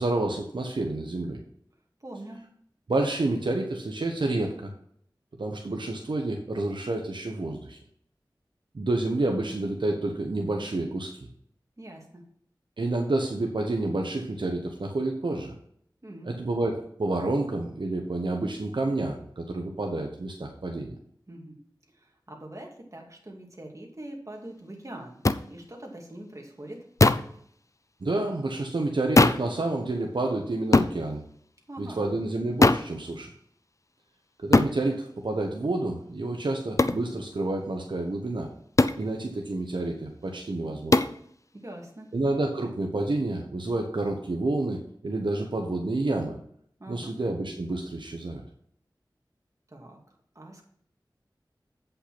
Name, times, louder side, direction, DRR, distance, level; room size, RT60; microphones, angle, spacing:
voice 1, 0.0-1.4 2.9-4.7 5.4-7.8 8.7-11.2 12.8-15.5 16.2-20.9 28.0-31.2 31.8-33.3 34.4-38.5 39.0-41.0 42.1-46.4 46.9-48.4, right 2 dB, 80° right, 2 dB, 1.0 m, -29 dB
voice 2, 2.0-2.4 11.8-12.2 16.0-16.3 21.3-21.6 21.9-25.2 25.5-26.9 31.7-32.0 41.5-42.1 46.8-47.1 49.7-50.0 50.3-50.6, right 1 dB, 40° right, 1 dB, 2.4 m, -43 dB
sound 1, 25.2-25.4 27.0-27.3 29.2-29.5 30.7-31.0 32.6-32.9 34.5-34.8 36.8-37.0 38.8-39.0 40.9-41.2, left 2 dB, 40° left, 0.5 m, -19 dB
8.5 x 5.6 x 5.9 m, 0.65 s
wide cardioid pair, 40°, 8 cm